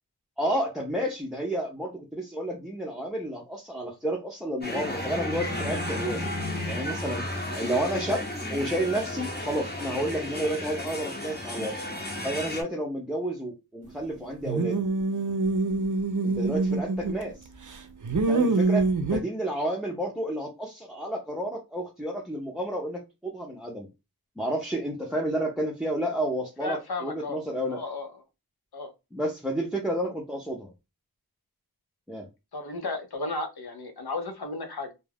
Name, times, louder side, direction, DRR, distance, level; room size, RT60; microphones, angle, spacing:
voice 1, 0.4-6.3 6.7-7.2 7.6-11.8 12.2-14.8 16.2-17.4 18.3-23.9 24.4-27.8 29.1-30.7 32.1-32.3, right 1 dB, ahead, 0 dB, 0.5 m, -31 dB
sound 1, 4.6-12.6, left 1 dB, 25° left, 0.8 m, -33 dB
sound 2, 14.5-17.3 17.7-19.2, right 3 dB, 55° right, 0.5 m, -25 dB
voice 2, 26.6-27.4 27.7-28.1 28.7-28.9 32.5-34.9, left 3 dB, 80° left, 6 dB, 0.7 m, -34 dB
2.3 x 2.1 x 3.3 m, 0.25 s
wide cardioid pair, 40°, 38 cm